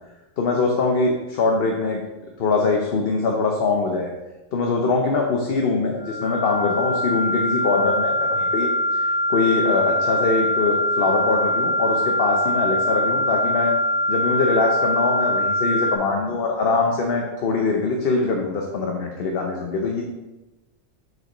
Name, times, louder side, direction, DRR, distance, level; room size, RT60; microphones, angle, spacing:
voice 1, 0.4-2.0 2.4-4.1 4.5-13.7 14.1-20.0, left 3 dB, 55° left, 1 dB, 0.8 m, -23 dB
sound 1, 6.0-16.0, left 1 dB, 20° left, 1.0 m, -23 dB
7.6 x 5.2 x 3.0 m, 1.1 s
omnidirectional pair, 1.3 m